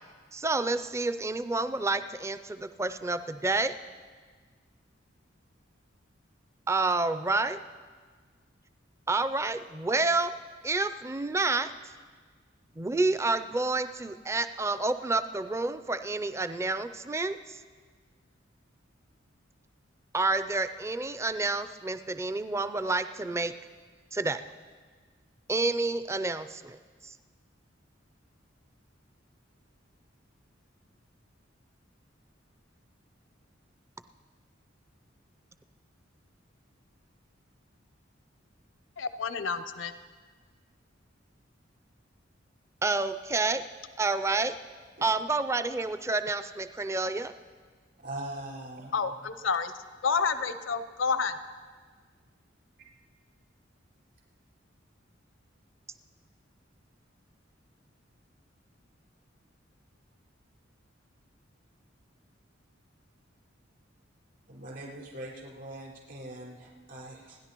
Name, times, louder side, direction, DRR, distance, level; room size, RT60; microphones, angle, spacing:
voice 1, 0.3-3.7 6.7-7.6 9.1-10.3 10.6-11.7 12.8-17.6 20.1-23.5 24.1-24.4 25.5-26.8 27.0-27.1 42.8-43.6 44.0-44.5 45.0-47.3, right 3 dB, 15° right, 11 dB, 0.4 m, -29 dB
voice 2, 39.0-39.9 48.9-49.7 50.0-51.3, left 5 dB, 80° left, 12 dB, 0.7 m, -29 dB
voice 3, 48.0-49.0 64.5-67.4, right 1 dB, 65° right, -6 dB, 4.7 m, -41 dB
29.0 x 10.5 x 3.0 m, 1.5 s
head